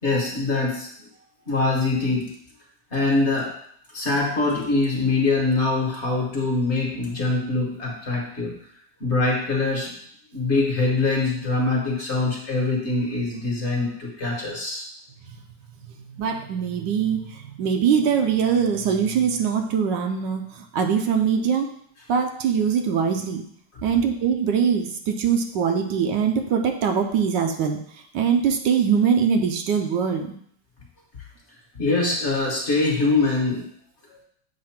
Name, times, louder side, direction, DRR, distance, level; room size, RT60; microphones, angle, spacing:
voice 1, 0.0-0.9 1.5-2.3 2.9-3.5 3.9-8.5 9.0-9.9 10.3-14.8 31.8-33.7, left 3 dB, 40° left, -2 dB, 1.3 m, -23 dB
voice 2, 16.2-21.7 22.1-23.4 23.8-27.8 28.1-30.4, right 7 dB, 75° right, 5 dB, 1.3 m, -22 dB
7.5 x 2.5 x 5.8 m, 0.65 s
omnidirectional pair, 2.0 m